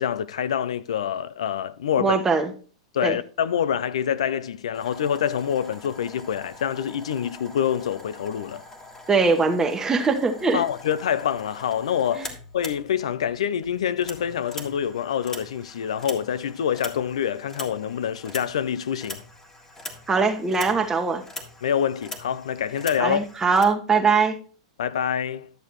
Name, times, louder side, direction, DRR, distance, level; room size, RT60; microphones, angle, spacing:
voice 1, 0.0-2.2 2.9-8.6 10.5-19.2 21.6-23.3 24.8-25.5, left 9 dB, 80° left, 0.5 m, -26 dB
voice 2, 2.0-2.5 3.0-3.2 9.1-10.6 12.2-12.3 20.1-21.2 23.0-24.4, right 4 dB, 15° right, 1.2 m, -21 dB
sound 1, 4.7-13.4 13.6-23.6, left 2 dB, 15° left, 1.7 m, -42 dB
11.5 x 6.7 x 3.0 m
hypercardioid pair, 110°, 3 cm